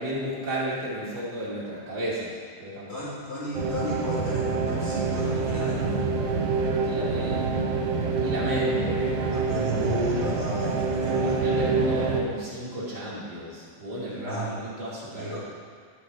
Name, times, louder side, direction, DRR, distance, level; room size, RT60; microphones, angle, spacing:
voice 1, 0.0-2.3 2.6-3.0 6.6-7.7 8.0-9.2 11.2-15.4, right 1 dB, 35° right, -7 dB, 2.1 m, -33 dB
voice 2, 2.9-6.0 9.3-11.4 14.1-14.6 15.1-15.4, equal, 20° left, -10 dB, 2.3 m, -33 dB
sound 1, 3.5-12.2, right 4 dB, 75° right, 2.6 m, -26 dB
12.5 x 6.6 x 4.8 m, 2.1 s
omnidirectional pair, 4.3 m